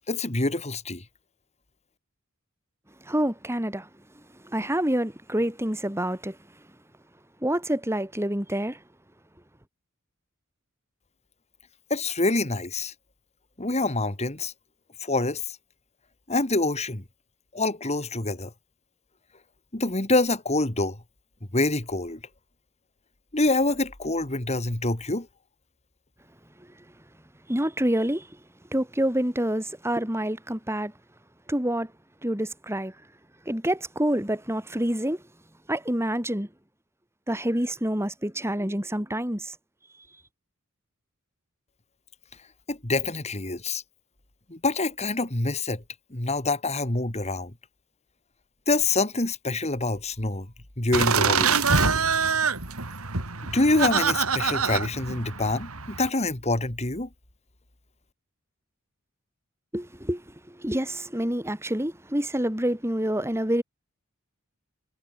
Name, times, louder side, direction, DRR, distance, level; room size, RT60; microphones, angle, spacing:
voice 1, 0.1-1.0 11.9-12.9 13.6-14.5 15.0-15.6 16.3-17.0 17.5-18.5 19.7-21.0 21.5-22.2 23.3-25.3 42.7-43.8 44.5-45.8 46.1-47.5 48.7-50.5 50.8-51.9 53.5-57.1, left 2 dB, 30° left, 2.3 m, -26 dB
voice 2, 3.1-3.9 4.4-6.4 7.4-8.8 27.5-28.3 28.7-30.9 31.5-31.9 32.2-32.9 33.5-35.2 35.7-36.5 37.3-39.5 59.7-60.2 60.6-63.6, right 1 dB, 10° right, 4.0 m, -27 dB
sound 1, 50.9-56.1, right 5 dB, 85° right, 3.6 m, -25 dB
head